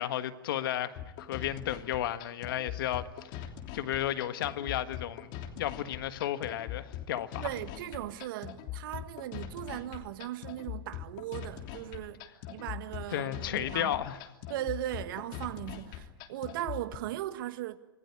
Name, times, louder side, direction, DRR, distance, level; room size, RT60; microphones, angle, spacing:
voice 1, 0.0-3.4 3.7-5.3 5.6-7.4 13.1-14.2, left 12 dB, 75° left, 1.6 m, -33 dB
sound 1, 1.0-17.0, left 10 dB, 60° left, 3.1 m, -42 dB
voice 2, 7.4-12.2 12.5-14.0 14.5-17.8, right 13 dB, 70° right, 1.7 m, -38 dB
26.5 x 18.5 x 9.8 m
hypercardioid pair, 110°, 12 cm